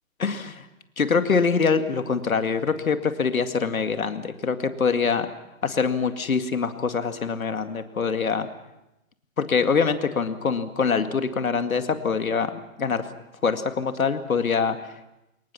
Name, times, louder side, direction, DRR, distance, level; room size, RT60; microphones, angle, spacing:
voice 1, 0.2-0.6 1.0-5.3 5.6-8.5 9.4-12.5 12.8-13.1 13.4-14.8, left 5 dB, 80° left, 8 dB, 2.3 m, -24 dB
28.5 x 22.5 x 5.9 m, 0.92 s
hypercardioid pair, 135°, 41 cm